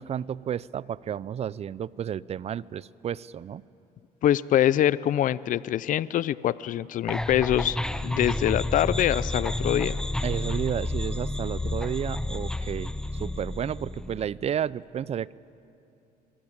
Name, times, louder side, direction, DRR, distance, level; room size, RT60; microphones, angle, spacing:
voice 1, 0.0-3.6 10.2-12.9 13.2-15.3, right 9 dB, 40° right, 21 dB, 0.5 m, -32 dB
voice 2, 4.2-7.8 8.0-10.0, left 11 dB, 50° left, 19 dB, 0.5 m, -24 dB
sound 1, 7.1-14.3, left 1 dB, 5° left, 0.7 m, -30 dB
24.0 x 20.5 x 8.7 m, 2.7 s
cardioid pair, 110°, 17 cm